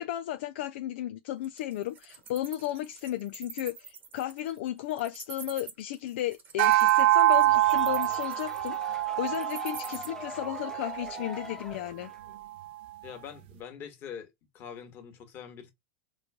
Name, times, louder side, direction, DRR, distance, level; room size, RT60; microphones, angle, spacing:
voice 1, 0.0-12.1, left 13 dB, 65° left, 0.4 m, -34 dB
Wild animals, 1.4-10.1, right 6 dB, 30° right, 1.1 m, -45 dB
sound 1, 6.6-11.2, right 16 dB, 60° right, 0.5 m, -25 dB
sound 2, 7.3-12.3, left 3 dB, 10° left, 0.7 m, -43 dB
voice 2, 13.0-15.7, left 8 dB, 35° left, 1.4 m, -44 dB
3.7 x 3.1 x 2.2 m
supercardioid pair, 135°, 7 cm